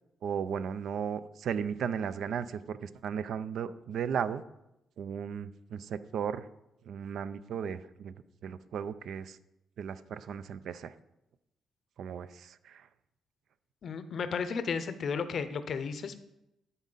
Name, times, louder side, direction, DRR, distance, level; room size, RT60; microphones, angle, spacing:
voice 1, 0.2-4.4 5.0-6.4 6.9-8.1 8.4-9.4 9.8-10.9 12.0-12.9, right 7 dB, 70° right, 14 dB, 0.4 m, -35 dB
voice 2, 13.8-16.2, left 5 dB, 55° left, 11 dB, 0.6 m, -33 dB
11.0 x 4.2 x 4.0 m, 0.87 s
cardioid pair, 90°, 0 cm